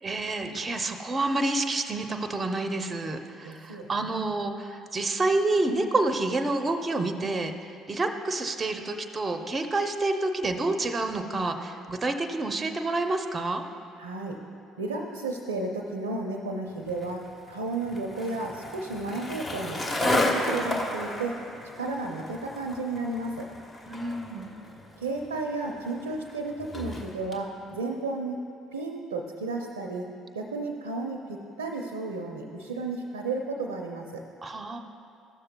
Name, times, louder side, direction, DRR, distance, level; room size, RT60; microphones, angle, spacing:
voice 1, 0.0-13.7 21.8-21.9 23.9-24.5 34.4-34.8, right 2 dB, 30° right, 6 dB, 0.6 m, -28 dB
voice 2, 3.4-4.2 14.0-14.4 14.8-21.4 21.7-23.5 25.0-28.4 28.7-30.1 30.3-34.2, right 3 dB, 90° right, 2 dB, 0.5 m, -33 dB
Skateboard, 16.9-27.4, left 1 dB, 30° left, 1.2 m, -33 dB
14.0 x 6.6 x 2.2 m, 2.5 s
hypercardioid pair, 55°, 0 cm